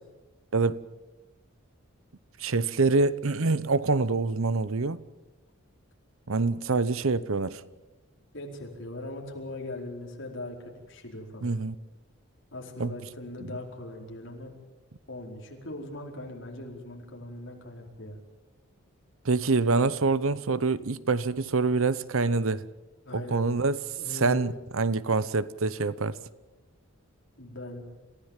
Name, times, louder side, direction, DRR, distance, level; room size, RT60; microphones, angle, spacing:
voice 1, 0.5-0.9 2.4-5.0 6.3-7.6 11.4-11.7 12.8-12.9 13.4-13.5 19.2-22.7 23.1-23.8 24.1-26.2, right 3 dB, 70° right, 0.8 m, -26 dB
voice 2, 8.3-11.5 12.5-14.5 15.1-18.2 23.0-23.5 24.0-24.5 27.4-27.8, left 2 dB, 60° left, 4.6 m, -40 dB
28.0 x 15.5 x 7.4 m
head